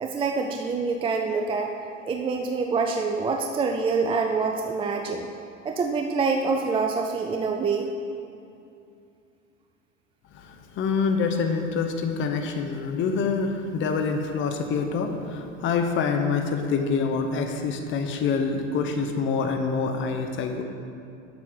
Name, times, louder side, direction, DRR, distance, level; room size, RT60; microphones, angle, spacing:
voice 1, 0.0-1.7 2.0-5.3 5.6-7.9, right 4 dB, 15° right, 3 dB, 0.4 m, -26 dB
voice 2, 10.3-20.6, left 5 dB, 30° left, 5 dB, 0.8 m, -26 dB
7.5 x 5.3 x 6.2 m, 2.5 s
hypercardioid pair, 95°, 38 cm